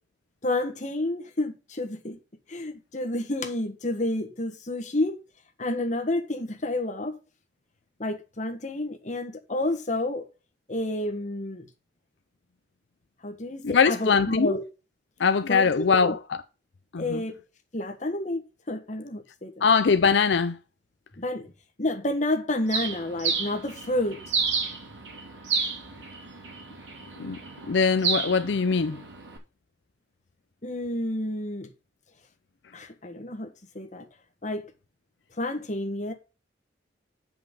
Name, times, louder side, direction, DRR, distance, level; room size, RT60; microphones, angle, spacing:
voice 1, 0.4-2.2 2.5-5.2 5.6-7.2 8.0-10.2 10.7-11.7 13.2-14.6 15.5-16.1 17.0-17.4 17.7-18.4 18.7-19.6 21.2-21.5 21.8-24.2 30.6-31.7 32.7-34.1 34.4-34.7 35.4-36.1, left 1 dB, 40° left, 1.5 m, -30 dB
voice 2, 13.6-14.5 15.2-16.4 16.9-17.2 19.6-20.6 27.2-27.4 27.7-29.0, left 5 dB, 75° left, 0.5 m, -22 dB
Bird, 22.7-29.4, right 5 dB, 85° right, 3.0 m, -31 dB
7.8 x 5.6 x 5.2 m
head